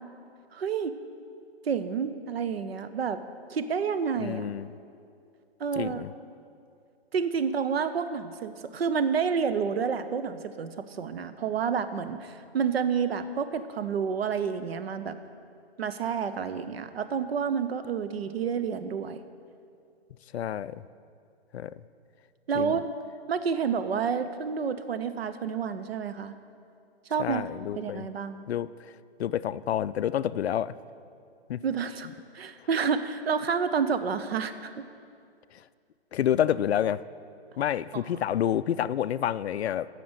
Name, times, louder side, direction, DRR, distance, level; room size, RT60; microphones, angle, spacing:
voice 1, 0.5-0.9 1.6-3.2 3.5-4.5 5.6-6.0 7.1-15.2 15.8-19.2 22.5-22.9 23.3-26.4 27.1-28.5 31.6-32.1 32.3-34.7 37.9-38.0, right 6 dB, 70° right, 11 dB, 0.8 m, -29 dB
voice 2, 4.2-4.7 5.8-6.1 20.3-20.8 21.5-21.7 22.5-22.8 27.2-28.0 28.5-28.7 29.2-30.7 31.5-31.6 36.1-37.0 37.6-39.9, left 10 dB, 80° left, 17 dB, 0.5 m, -28 dB
9.2 x 6.7 x 7.9 m, 2.4 s
hypercardioid pair, 175°, 32 cm